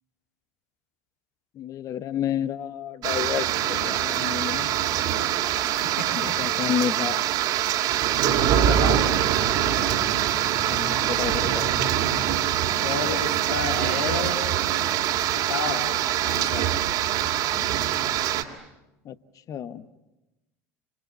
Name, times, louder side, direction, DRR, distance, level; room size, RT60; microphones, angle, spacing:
voice 1, 1.5-4.7 6.1-7.4 8.9-9.0 10.7-11.7 19.0-19.1 19.5-19.9, left 9 dB, 45° left, 14 dB, 1.1 m, -30 dB
sound 1, 3.0-18.4, right 11 dB, 60° right, 2.4 m, -24 dB
voice 2, 8.5-9.1 12.7-14.4 15.3-16.7, left 5 dB, 85° left, 4 dB, 3.3 m, -31 dB
27.0 x 26.5 x 8.1 m, 0.99 s
hypercardioid pair, 80°, 8 cm